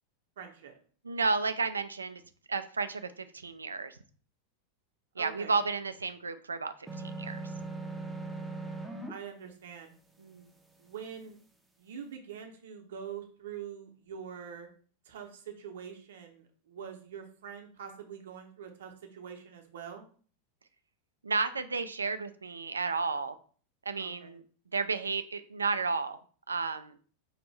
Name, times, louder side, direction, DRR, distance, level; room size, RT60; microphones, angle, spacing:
voice 1, 0.4-0.7 5.2-5.6 9.1-9.9 10.8-11.4 11.8-14.7 15.0-20.0 24.0-24.3, right 8 dB, 60° right, 4 dB, 0.8 m, -44 dB
voice 2, 1.0-2.2 2.5-4.0 5.2-7.5 10.2-10.5 21.2-23.3 23.9-24.4 24.7-26.2 26.5-27.0, right 4 dB, 75° right, 11 dB, 0.3 m, -32 dB
sound 1, 6.9-9.1, right 3 dB, 5° right, 0.6 m, -39 dB
4.8 x 2.6 x 3.1 m, 0.43 s
figure-of-eight pair, 90°, 0 cm